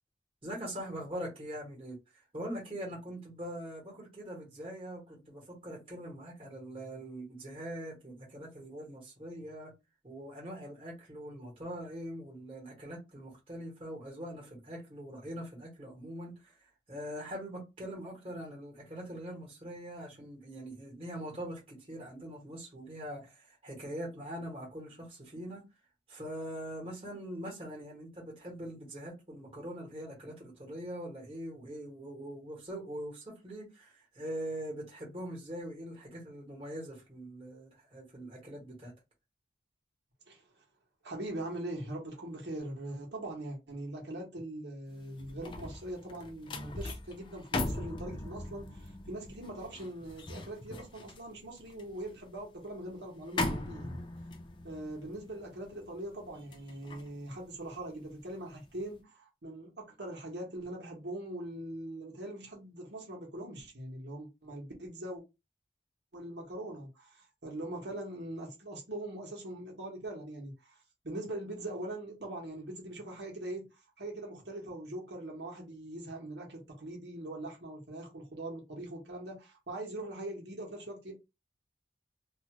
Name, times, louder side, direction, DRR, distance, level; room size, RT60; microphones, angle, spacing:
voice 1, 0.4-9.7 10.0-16.5 16.9-25.6 26.1-38.9, equal, 30° right, 1.3 m, -42 dB
voice 2, 41.0-54.0 54.6-65.2 66.1-70.8 71.0-81.1, right 1 dB, 80° right, 1.2 m, -42 dB
sound 1, 45.0-58.3 58.7-59.0, left 2 dB, 25° left, 0.4 m, -40 dB
2.7 x 2.4 x 2.9 m
head